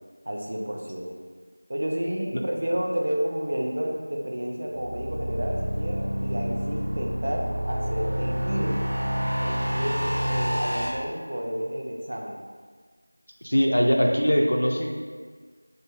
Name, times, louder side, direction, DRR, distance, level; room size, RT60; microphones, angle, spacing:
voice 1, 0.3-1.1 1.7-8.8 9.4-12.4, equal, 40° right, -1 dB, 0.4 m, -31 dB
sound 1, 4.8-10.9, equal, 70° right, 0.7 m, -28 dB
voice 2, 13.4-14.9, equal, 80° left, 1 dB, 0.5 m, -21 dB
3.2 x 2.1 x 3.2 m, 1.5 s
figure-of-eight pair, 175°, 0 cm